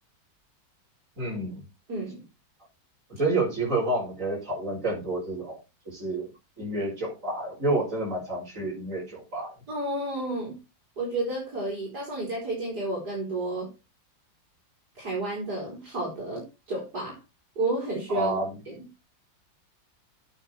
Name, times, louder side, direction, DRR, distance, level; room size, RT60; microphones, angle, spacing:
voice 1, 1.2-1.6 3.1-5.6 5.9-6.3 6.6-9.5 18.1-18.5, right 2 dB, 40° right, -2 dB, 5.6 m, -29 dB
voice 2, 1.9-2.2 9.7-10.6 11.0-13.7 14.9-17.2 17.6-18.3 18.7-18.8, right 2 dB, 55° right, -5 dB, 4.9 m, -31 dB
9.1 x 8.2 x 4.4 m, 0.26 s
omnidirectional pair, 2.0 m